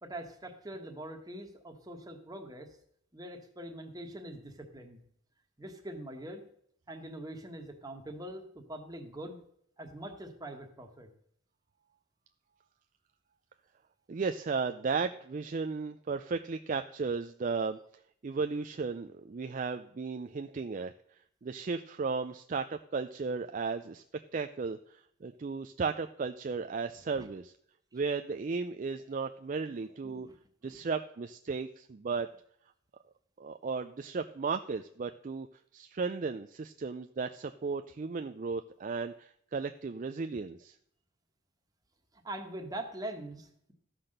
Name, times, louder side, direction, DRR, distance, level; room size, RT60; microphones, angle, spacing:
voice 1, 0.0-2.7 3.1-5.0 5.6-6.4 6.9-9.4 9.8-11.1 27.1-27.3 29.7-30.3 30.6-30.8 42.1-43.7, right 1 dB, 15° right, 3 dB, 1.4 m, -43 dB
voice 2, 14.1-17.8 18.2-20.9 21.4-24.0 24.3-27.5 27.9-30.3 30.6-32.3 33.4-35.5 35.7-40.8, right 4 dB, 40° right, 7 dB, 0.4 m, -35 dB
13.5 x 5.9 x 6.6 m, 0.67 s
head